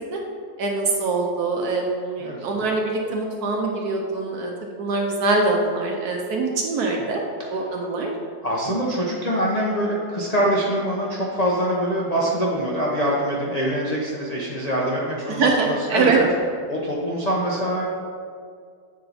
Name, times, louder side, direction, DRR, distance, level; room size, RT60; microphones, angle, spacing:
voice 1, 0.6-7.2 7.5-8.1 15.3-16.2, right 3 dB, 65° right, 0 dB, 1.1 m, -23 dB
voice 2, 8.4-16.3 16.7-17.9, equal, 60° left, -4 dB, 0.4 m, -24 dB
7.5 x 4.5 x 4.0 m, 2.2 s
omnidirectional pair, 2.0 m